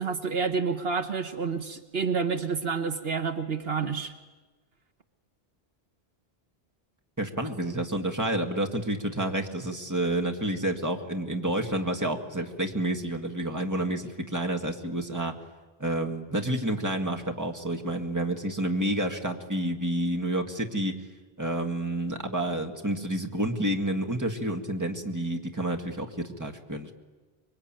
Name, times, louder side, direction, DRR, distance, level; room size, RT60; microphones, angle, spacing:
voice 1, 0.0-4.1, right 5 dB, 70° right, 7 dB, 1.4 m, -29 dB
voice 2, 7.2-15.3 15.8-20.9 21.4-26.9, right 1 dB, 15° right, 3 dB, 2.0 m, -29 dB
25.5 x 23.0 x 8.9 m, 1.3 s
omnidirectional pair, 1.1 m